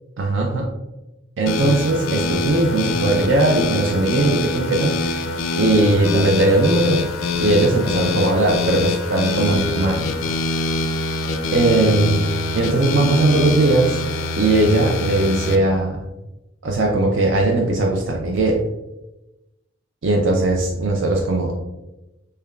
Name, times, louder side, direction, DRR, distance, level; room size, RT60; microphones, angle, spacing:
voice 1, 0.2-0.7 1.4-5.2 5.6-7.1 7.4-10.1 11.5-12.2 12.5-14.0 14.4-16.0 16.6-18.6 20.0-21.6, right 2 dB, 70° right, 0 dB, 0.5 m, -19 dB
sound 1, 1.5-15.6, left 3 dB, 90° left, 0.4 m, -24 dB
6.6 x 2.2 x 2.3 m, 0.97 s
head